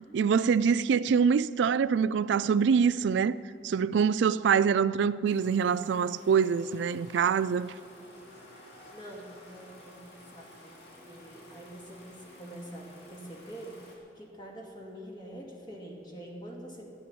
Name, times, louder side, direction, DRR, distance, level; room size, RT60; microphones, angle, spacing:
voice 1, 0.1-3.4 3.6-7.7, right 6 dB, 70° right, 0.3 m, -25 dB
sound 1, 5.2-14.0, left 1 dB, 60° left, 2.9 m, -52 dB
voice 2, 8.9-10.8 11.0-17.0, right 1 dB, 25° left, 2.4 m, -46 dB
13.0 x 11.5 x 7.0 m
head